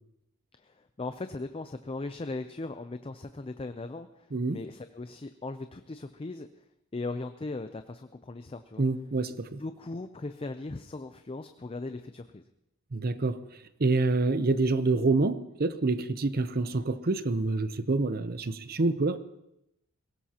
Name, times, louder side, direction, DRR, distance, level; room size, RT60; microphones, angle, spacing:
voice 1, 0.6-6.5 6.9-8.8 9.6-12.4, left 2 dB, 25° left, 9 dB, 0.4 m, -38 dB
voice 2, 8.8-9.6 12.9-13.4 13.8-19.2, right 3 dB, 45° right, 13 dB, 0.7 m, -27 dB
22.0 x 17.5 x 2.9 m, 0.85 s
head